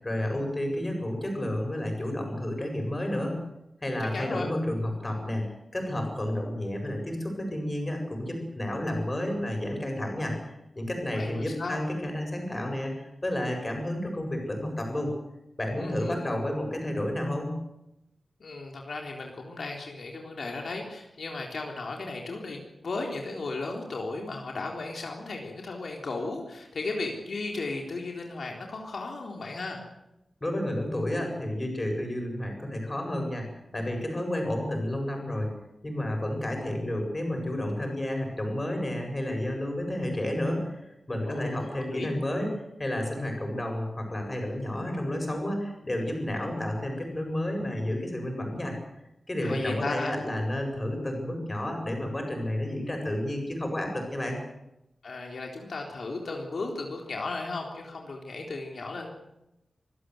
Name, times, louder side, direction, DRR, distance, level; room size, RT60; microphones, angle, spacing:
voice 1, 0.0-3.4 3.8-15.1 15.6-17.6 30.4-35.5 35.8-42.5 42.8-48.7 49.3-54.4, left 1 dB, 25° left, 3 dB, 7.7 m, -31 dB
voice 2, 4.0-4.5 11.0-11.8 15.8-16.1 18.4-29.8 41.3-42.1 49.4-50.1 55.0-59.1, left 3 dB, 75° left, 1 dB, 3.8 m, -35 dB
26.0 x 16.0 x 8.1 m, 0.87 s
wide cardioid pair, 115°, 0 cm